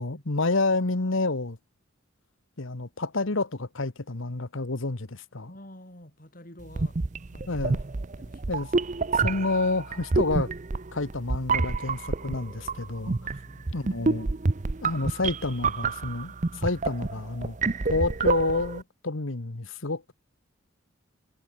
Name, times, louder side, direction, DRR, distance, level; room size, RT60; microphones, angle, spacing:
voice 1, 0.0-1.6 2.6-5.5 7.5-7.8 8.5-8.7 9.1-10.5 10.9-13.3 13.7-14.3 14.8-17.6 17.9-20.1, left 3 dB, 70° left, 1.3 m, -29 dB
voice 2, 5.5-7.6 8.2-8.7 13.4-13.9, left 1 dB, 40° left, 5.8 m, -49 dB
sound 1, 6.7-18.8, right 3 dB, 35° right, 0.6 m, -28 dB
head